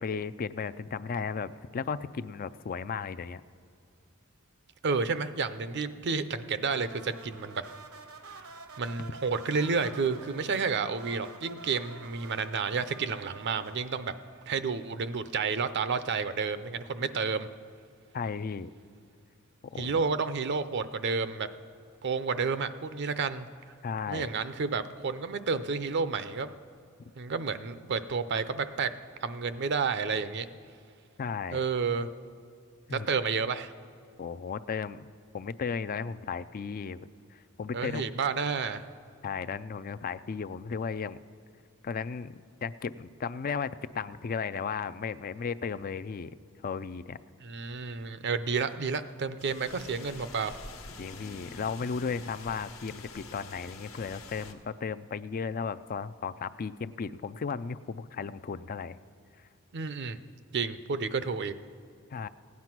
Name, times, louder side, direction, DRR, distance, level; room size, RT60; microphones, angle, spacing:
voice 1, 0.0-3.4 18.1-18.7 19.6-20.1 23.8-24.3 31.2-31.6 32.9-33.1 34.2-35.1 35.3-37.1 37.6-38.1 39.2-41.2 41.8-46.3 46.6-47.2 51.0-59.0 62.1-62.3, left 5 dB, 40° left, 13 dB, 0.4 m, -35 dB
voice 2, 4.8-7.6 8.3-8.5 8.8-14.1 14.5-17.5 19.8-21.5 22.0-23.5 24.1-26.5 27.2-28.9 29.2-30.5 31.5-32.1 32.9-33.7 37.7-38.8 47.4-50.6 59.7-60.2 60.5-61.5, right 5 dB, 55° right, 12 dB, 0.6 m, -30 dB
sound 1, 6.7-15.1, right 4 dB, 80° right, 1.0 m, -49 dB
sound 2, 49.4-54.5, left 3 dB, 75° left, 1.3 m, -46 dB
17.0 x 9.5 x 6.0 m, 2.3 s
head